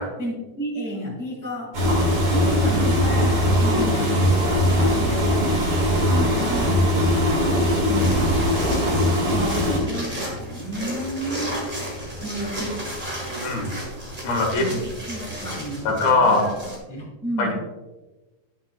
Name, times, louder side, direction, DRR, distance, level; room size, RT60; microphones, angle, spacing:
voice 1, 0.2-1.8 2.3-4.4 4.6-5.8 6.1-8.6 9.3-11.6 12.2-12.9 14.5-16.5 16.9-17.5, equal, 10° right, -3 dB, 0.6 m, -32 dB
sound 1, 1.7-9.8, equal, 45° right, 2.6 m, -20 dB
sound 2, 8.0-16.8, right 1 dB, 90° right, 0.4 m, -33 dB
voice 2, 13.4-13.8 14.2-14.7 15.9-16.5 17.4-17.5, left 3 dB, 80° left, 0 dB, 3.5 m, -21 dB
10.5 x 7.4 x 2.3 m, 1.1 s
omnidirectional pair, 4.2 m